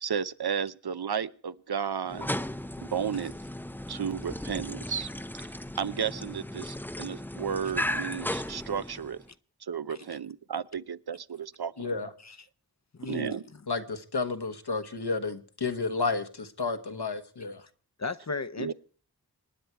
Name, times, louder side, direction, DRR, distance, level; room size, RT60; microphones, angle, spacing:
voice 1, 0.0-2.3 2.9-3.3 3.9-5.1 5.8-9.2 9.6-12.1 13.0-13.4 18.6-18.7, right 7 dB, 75° right, 0.7 m, -33 dB
sound 1, 2.1-9.3, left 1 dB, 5° left, 0.6 m, -36 dB
voice 2, 11.8-12.1 13.7-17.6, left 4 dB, 80° left, 1.3 m, -31 dB
voice 3, 12.9-13.4 18.0-18.7, left 3 dB, 45° left, 0.7 m, -35 dB
26.5 x 9.6 x 4.6 m
wide cardioid pair, 40°, 39 cm